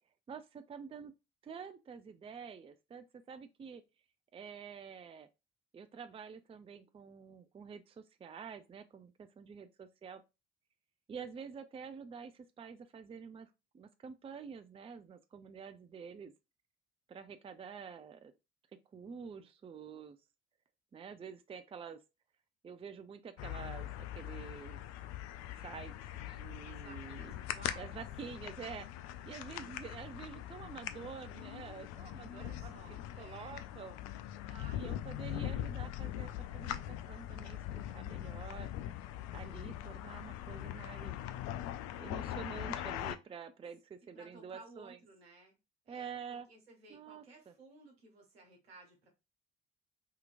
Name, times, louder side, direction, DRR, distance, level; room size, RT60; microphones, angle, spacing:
voice 1, 0.3-1.1 1.4-3.8 4.3-5.3 5.7-10.2 11.1-16.3 17.1-18.3 18.9-20.2 20.9-22.0 22.6-23.9 24.1-24.8 25.6-27.4 27.8-28.9 29.2-34.0 34.7-38.7 39.3-41.2 42.0-45.0 45.9-46.5 46.9-47.5, right 6 dB, 20° right, 0.4 m, -48 dB
sound 1, 23.4-43.2, left 12 dB, 60° left, 0.4 m, -42 dB
voice 2, 26.6-28.0 32.3-33.7 34.4-35.0 44.1-45.6 45.8-49.1, right 3 dB, 85° right, 1.1 m, -57 dB
3.7 x 2.9 x 2.4 m
figure-of-eight pair, 50°, 30 cm